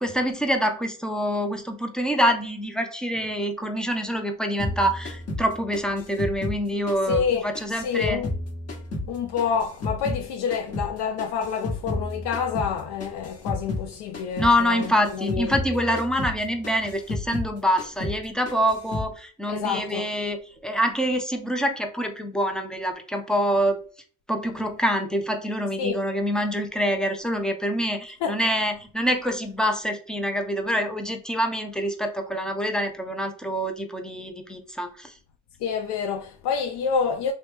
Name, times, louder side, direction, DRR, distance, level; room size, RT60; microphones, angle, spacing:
voice 1, 0.0-8.2 14.4-20.4 20.6-23.8 24.3-35.1, equal, ahead, 0.4 m, -26 dB
sound 1, 4.6-7.3 7.5-10.2 10.5-13.9 14.1-14.6 14.8-17.5 17.8-18.2 18.5-19.1, left 2 dB, 30° left, 1.0 m, -32 dB
voice 2, 7.1-8.3 9.1-15.5 15.9-16.0 19.5-20.1 25.8-26.0 28.2-28.4 35.6-37.3, left 6 dB, 60° left, 0.5 m, -28 dB
3.0 x 2.0 x 3.2 m
supercardioid pair, 70°, 48 cm